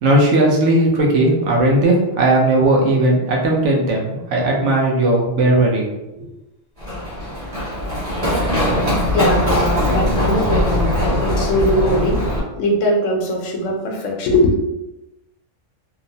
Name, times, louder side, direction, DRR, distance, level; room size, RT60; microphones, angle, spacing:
voice 1, 0.0-5.9 6.1-6.3, right 1 dB, 75° right, -1 dB, 1.0 m, -16 dB
Run, 6.8-12.4, left 1 dB, 30° right, 1.0 m, -20 dB
voice 2, 9.1-12.2 12.6-14.5, equal, 85° left, 0 dB, 1.0 m, -20 dB
2.9 x 2.0 x 2.7 m, 0.96 s
omnidirectional pair, 1.3 m